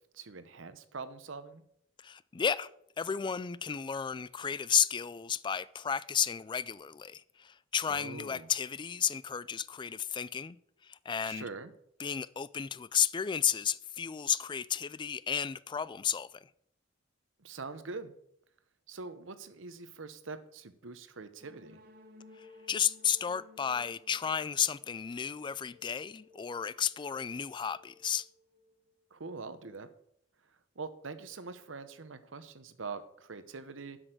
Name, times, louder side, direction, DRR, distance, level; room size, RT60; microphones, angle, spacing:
voice 1, 0.1-1.6 7.9-8.5 11.2-11.7 17.4-18.1 18.9-21.8 29.1-29.9 30.8-34.0, right 4 dB, 80° right, 0.9 m, -44 dB
voice 2, 2.0-2.7 3.0-10.6 10.8-11.5 12.0-16.5 22.4-28.3, left 8 dB, 25° left, 0.3 m, -33 dB
sound 1, 21.4-29.1, left 2 dB, 50° right, 1.6 m, -58 dB
7.8 x 6.4 x 7.6 m
head